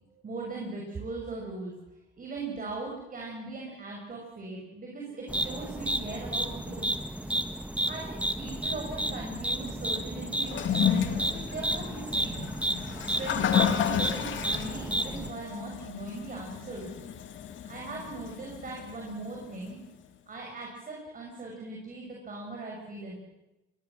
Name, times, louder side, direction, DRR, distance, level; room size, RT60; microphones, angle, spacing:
voice 1, 0.1-1.7 2.2-6.8 7.9-12.5 13.0-16.9 17.6-19.8 20.3-23.2, right 3 dB, 45° right, -1 dB, 6.6 m, -39 dB
sound 1, 5.3-15.3, right 1 dB, 5° right, 1.9 m, -32 dB
Toilet flush, 10.4-19.7, left 9 dB, 75° left, 2.4 m, -32 dB
22.0 x 21.5 x 7.6 m, 0.99 s
cardioid pair, 90°, 20 cm